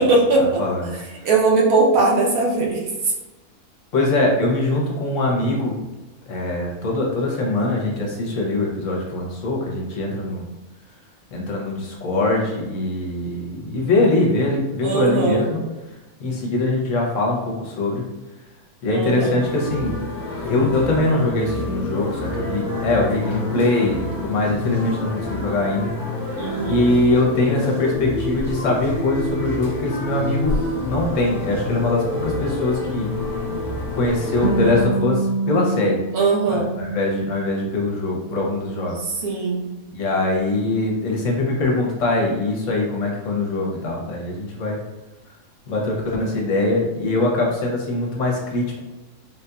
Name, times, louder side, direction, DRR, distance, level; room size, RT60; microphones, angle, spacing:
voice 1, 0.0-0.6 0.9-2.8 14.8-15.4 18.9-19.4 26.4-26.8 36.1-36.7 39.2-39.7, right 3 dB, 80° right, -2 dB, 1.3 m, -19 dB
voice 2, 0.6-0.9 3.9-5.7 6.3-10.5 11.3-15.6 16.2-18.0 18.8-19.9 20.4-25.9 26.6-33.1 33.9-36.0 36.5-39.0 39.9-44.8 45.7-48.8, left 2 dB, 65° left, -2 dB, 1.0 m, -22 dB
sound 1, 19.4-34.9, left 2 dB, 45° left, 0.6 m, -28 dB
Harp, 34.4-37.8 38.2-39.2, right 3 dB, 55° right, 0.9 m, -27 dB
3.8 x 2.7 x 2.3 m, 1.1 s
omnidirectional pair, 1.5 m